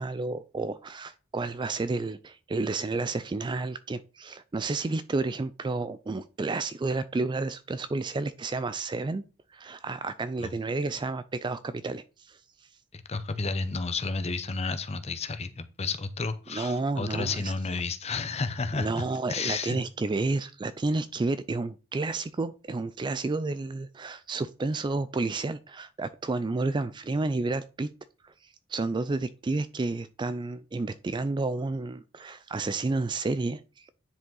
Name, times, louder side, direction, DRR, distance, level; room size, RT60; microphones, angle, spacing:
voice 1, 0.0-9.2 9.5-12.4 16.5-17.5 18.7-27.9 28.2-28.3 28.7-33.9, right 3 dB, 20° right, 0.3 m, -31 dB
voice 2, 12.9-19.0 19.3-19.8, left 4 dB, 30° left, 0.7 m, -31 dB
9.8 x 5.1 x 3.9 m
head